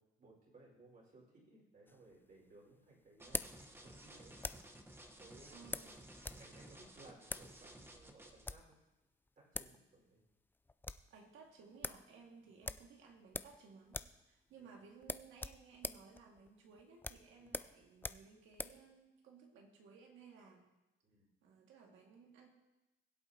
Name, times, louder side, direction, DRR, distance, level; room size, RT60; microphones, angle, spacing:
voice 1, 0.2-4.4 5.2-5.7 6.4-8.8 9.4-10.2 14.6-14.7 17.4-17.6 21.0-21.3, right 2 dB, 45° right, -3 dB, 4.6 m, -62 dB
sound 1, 1.9-4.8 5.7-6.5 6.7-6.8 7.2-7.5 8.2-8.7 9.3-9.4 9.5-9.8 10.1-10.2 10.5-11.1 11.4-11.5 11.8-12.0 12.6-13.6 13.9-14.2 14.5-14.6 15.0-18.8, left 3 dB, 10° left, 0.3 m, -44 dB
sound 2, 3.2-8.5, right 1 dB, 10° right, 1.1 m, -56 dB
voice 2, 5.5-6.0 11.1-20.7 21.4-22.5, right 5 dB, 85° right, 1 dB, 1.9 m, -59 dB
21.0 x 8.0 x 2.8 m, 1.0 s
cardioid pair, 90°, 20 cm